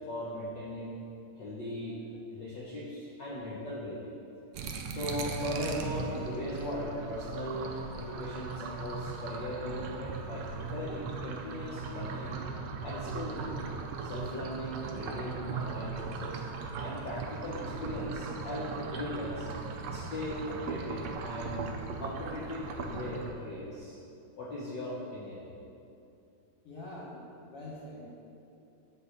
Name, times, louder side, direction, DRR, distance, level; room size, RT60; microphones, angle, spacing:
voice 1, 0.1-0.9 1.4-4.1 4.9-12.4 12.8-16.4 16.8-19.5 19.9-21.6 22.0-24.0 24.4-25.5, left 1 dB, 75° left, -6 dB, 1.0 m, -38 dB
sound 1, 4.5-23.3, right 5 dB, 85° right, 1.4 m, -38 dB
voice 2, 26.6-28.2, left 1 dB, 55° left, -7 dB, 2.1 m, -45 dB
9.7 x 4.2 x 7.0 m, 2.7 s
omnidirectional pair, 3.5 m